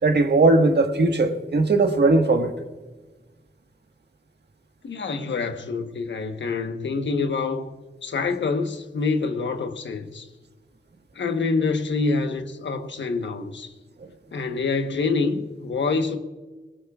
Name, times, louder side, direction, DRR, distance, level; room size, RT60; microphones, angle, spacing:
voice 1, 0.0-2.5, right 3 dB, 65° right, 1.5 m, -19 dB
voice 2, 4.8-7.7 8.0-10.3 11.1-13.7 14.3-16.2, left 4 dB, 90° left, 1.1 m, -26 dB
20.0 x 18.5 x 2.4 m
cardioid pair, 55°, 18 cm